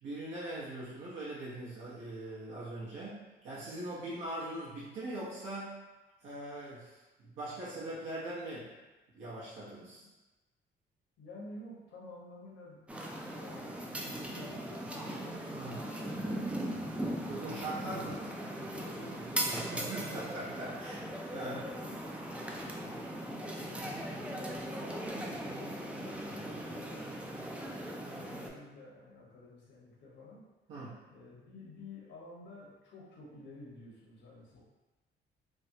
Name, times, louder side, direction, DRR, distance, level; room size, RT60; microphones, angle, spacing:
voice 1, 0.0-5.8 6.2-8.7 9.1-10.0 15.5-15.8 17.3-18.1 19.5-21.6 30.7-31.0, right 1 dB, 80° right, -8 dB, 0.9 m, -41 dB
voice 2, 11.2-16.5 17.0-18.2 18.5-20.5 21.3-22.0 22.8-27.1 28.1-30.4 31.1-34.6, left 2 dB, 65° left, -6 dB, 1.1 m, -50 dB
sound 1, 12.9-28.5, right 1 dB, 5° right, 0.3 m, -39 dB
3.4 x 2.1 x 2.7 m, 1.1 s
cardioid pair, 90°, 20 cm